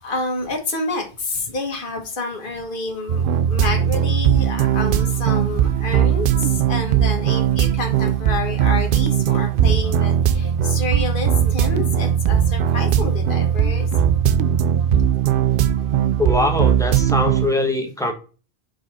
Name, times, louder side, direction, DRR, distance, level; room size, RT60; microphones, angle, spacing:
voice 1, 0.0-13.9, left 3 dB, 55° left, 2 dB, 1.6 m, -28 dB
sound 1, 3.1-17.5, right 9 dB, 65° right, 0.7 m, -19 dB
voice 2, 16.2-18.1, left 2 dB, 5° left, 3 dB, 1.2 m, -22 dB
4.8 x 4.8 x 4.1 m, 0.35 s
omnidirectional pair, 1.0 m